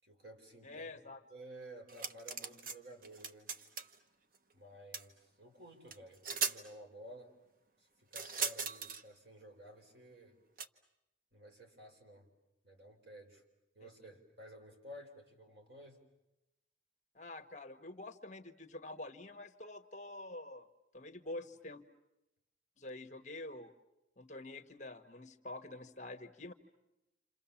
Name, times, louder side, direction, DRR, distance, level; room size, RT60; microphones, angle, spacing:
voice 1, 0.0-0.9 1.3-3.5 4.5-7.4 7.8-10.4 11.3-12.3 12.6-13.4 13.7-16.0, right 1 dB, 65° right, 2 dB, 4.7 m, -54 dB
voice 2, 0.6-1.2 13.8-13.9 17.1-20.7 20.9-21.8 22.8-23.7 24.2-26.5, left 2 dB, 40° left, 6 dB, 1.3 m, -47 dB
sound 1, 1.9-2.8 3.0-3.9 4.9-5.0 5.9-6.0 6.2-6.6 8.1-9.0 10.6-10.7, right 5 dB, 45° right, 1.0 m, -38 dB
29.5 x 28.0 x 7.2 m, 0.92 s
head